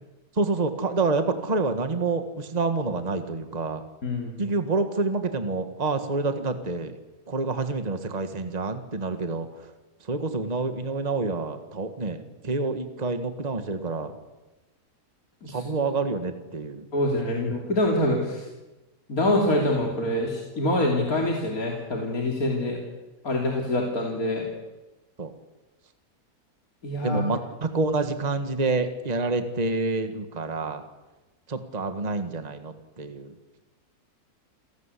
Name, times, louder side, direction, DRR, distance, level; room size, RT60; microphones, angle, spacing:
voice 1, 0.3-3.8 4.4-7.0 7.3-9.7 10.0-14.2 15.5-16.9 25.2-25.3 27.0-30.8 31.5-33.3, right 3 dB, 25° right, 8 dB, 1.7 m, -28 dB
voice 2, 4.0-4.3 15.4-15.6 16.9-18.5 19.1-22.8 23.2-24.5 26.8-27.2, left 1 dB, 65° left, 0 dB, 3.6 m, -25 dB
29.0 x 17.5 x 8.5 m, 1.1 s
omnidirectional pair, 1.6 m